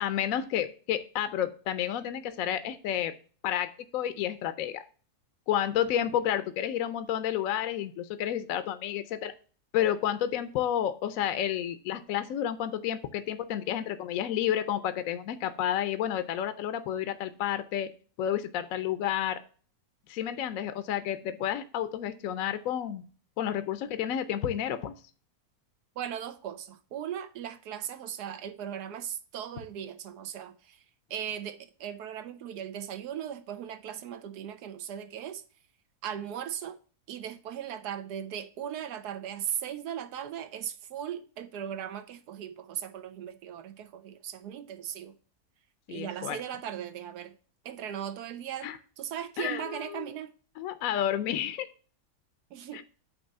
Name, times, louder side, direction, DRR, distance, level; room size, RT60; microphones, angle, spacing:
voice 1, 0.0-3.1 3.4-4.8 5.5-9.3 9.7-17.9 18.2-19.4 20.1-23.0 23.4-24.9 45.9-46.4 48.6-48.8 49.4-50.1 50.6-51.7 52.7-52.8, left 10 dB, 70° left, 0.9 m, -30 dB
voice 2, 26.0-30.8 31.1-35.4 36.0-36.8 37.1-45.1 45.9-47.3 47.6-48.7 49.0-50.3 52.5-52.8, right 9 dB, 85° right, 1.3 m, -38 dB
8.6 x 3.0 x 5.3 m
omnidirectional pair, 1.7 m